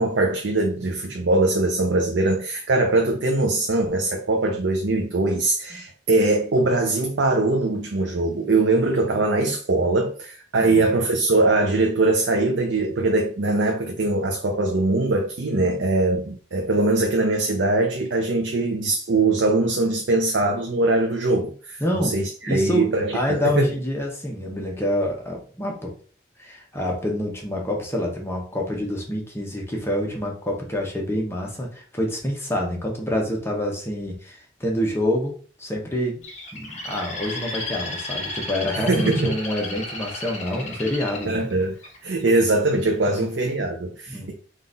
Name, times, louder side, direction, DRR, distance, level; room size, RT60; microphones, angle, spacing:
voice 1, 0.0-23.7 38.8-39.3 41.3-41.7 42.0-44.3, right 2 dB, 75° right, 0.6 m, -22 dB
voice 2, 21.8-22.2 22.5-25.9 26.4-35.3 35.6-36.2 36.5-41.5 43.1-43.3 44.1-44.3, left 1 dB, 15° left, 0.9 m, -27 dB
Bird, 36.2-42.3 42.9-43.2, left 2 dB, 40° left, 1.0 m, -34 dB
3.8 x 2.5 x 3.9 m
head